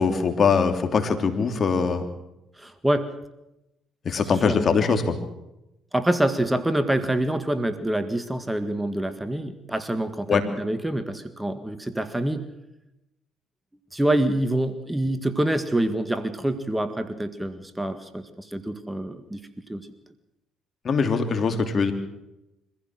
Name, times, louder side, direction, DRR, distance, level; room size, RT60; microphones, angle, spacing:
voice 1, 0.0-2.1 4.0-5.2 10.3-10.4 20.8-21.9, left 5 dB, 50° left, 7 dB, 3.0 m, -22 dB
voice 2, 2.6-3.1 4.5-4.6 5.9-12.4 13.9-19.4 19.7-19.8, right 1 dB, 10° right, 10 dB, 1.8 m, -26 dB
24.0 x 15.5 x 7.6 m, 0.91 s
supercardioid pair, 60°, 0 cm